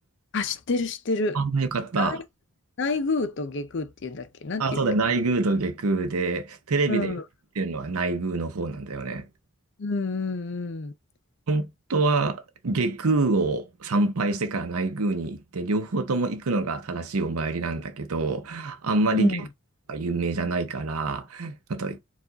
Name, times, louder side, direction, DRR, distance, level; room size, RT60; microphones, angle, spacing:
voice 1, 0.3-1.4 2.0-2.2 2.8-4.9 6.9-7.2 9.8-10.9 19.1-19.4, left 3 dB, 55° left, 0.5 m, -28 dB
voice 2, 1.3-2.2 4.6-7.2 7.6-9.3 11.5-19.4 19.9-22.0, right 3 dB, 85° right, 0.7 m, -26 dB
4.6 x 2.4 x 3.9 m
head